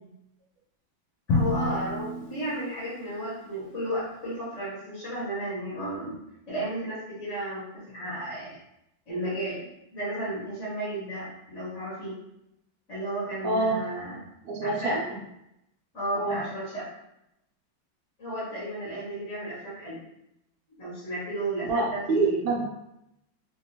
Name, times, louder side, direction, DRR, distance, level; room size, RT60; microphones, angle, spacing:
Drum, 1.3-3.3, left 2 dB, 80° left, 1.3 m, -29 dB
voice 1, 1.3-6.2 6.5-8.6 9.1-9.6 9.9-12.2 12.9-14.2 14.6-15.0 15.9-16.9 18.2-20.0 20.8-22.4, right 1 dB, 45° left, -9 dB, 1.2 m, -33 dB
voice 2, 13.4-13.8 14.4-14.9 16.1-16.4 21.6-22.6, right 3 dB, 65° right, -3 dB, 1.2 m, -26 dB
3.3 x 2.6 x 2.9 m, 0.83 s
omnidirectional pair, 2.2 m